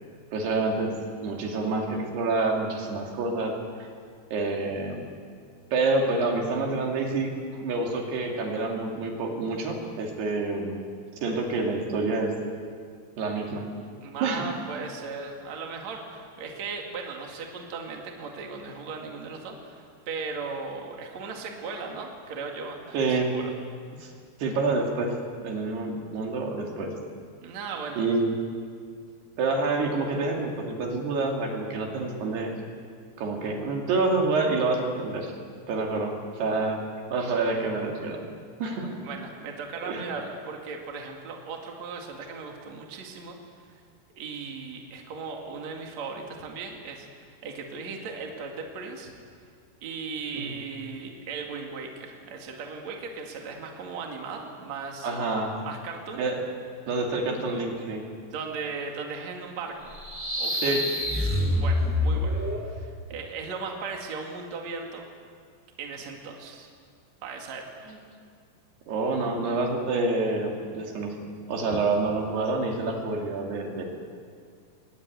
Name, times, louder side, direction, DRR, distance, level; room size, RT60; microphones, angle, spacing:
voice 1, 0.3-0.9 1.2-3.9 4.3-5.1 5.7-7.3 7.6-10.8 11.2-12.3 13.2-13.6 14.2-14.5 22.9-23.3 24.0-24.1 24.4-25.1 25.4-27.0 28.0-28.3 29.4-32.5 33.2-35.3 35.7-36.8 37.1-38.3 38.6-39.0 39.9-40.1 50.3-50.5 55.0-55.6 56.2-56.4 56.9-58.0 60.6-60.9 67.9-68.0 68.9-71.2 71.5-73.8, right 3 dB, 75° right, 1 dB, 4.7 m, -27 dB
voice 2, 14.0-23.5 27.4-28.1 39.0-43.4 44.2-47.1 47.4-49.1 49.8-55.1 55.6-56.2 58.3-59.9 60.4-60.8 61.2-65.0 65.8-66.7 67.2-67.6, right 4 dB, 50° right, 1 dB, 3.1 m, -37 dB
sound 1, 59.9-62.7, left 1 dB, 5° right, 1.5 m, -26 dB
21.5 x 19.0 x 9.5 m, 2.1 s
omnidirectional pair, 4.7 m